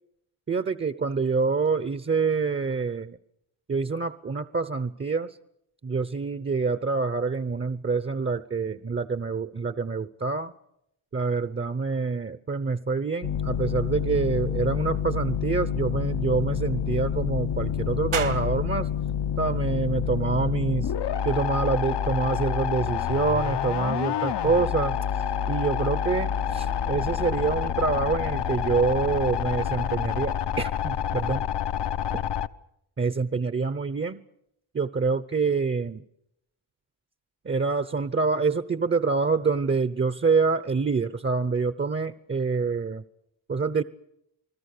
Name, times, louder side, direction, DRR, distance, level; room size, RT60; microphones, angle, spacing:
voice 1, 0.5-3.2 3.7-5.4 5.8-10.5 11.1-18.9 19.4-20.9 21.2-25.0 25.5-31.5 32.1-32.2 33.0-34.2 34.7-36.0 37.4-43.0 43.5-43.8, right 4 dB, 25° right, 14 dB, 0.9 m, -26 dB
sound 1, 13.2-32.5, left 9 dB, 60° left, 0.9 m, -28 dB
sound 2, 18.1-31.2, right 8 dB, 60° right, 1.9 m, -45 dB
29.0 x 20.5 x 6.8 m, 0.79 s
cardioid pair, 85°, 48 cm